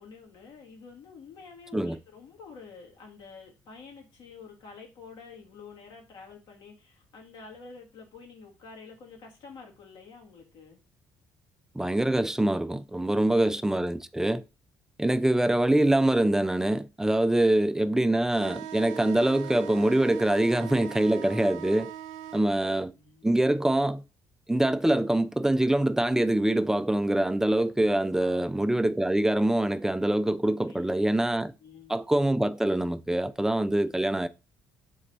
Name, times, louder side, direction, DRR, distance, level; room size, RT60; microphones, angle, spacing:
voice 1, 0.0-10.8 22.9-23.3 28.2-28.8 30.6-31.2 31.6-32.0 33.8-34.1, left 5 dB, 65° left, 1.8 m, -49 dB
voice 2, 11.7-14.4 15.0-21.9 22.3-22.9 23.2-24.0 24.5-31.5 31.9-34.3, right 1 dB, 5° right, 0.4 m, -24 dB
sound 1, 18.3-22.4, right 11 dB, 85° right, 0.4 m, -40 dB
3.9 x 3.2 x 4.1 m
hypercardioid pair, 60°, 8 cm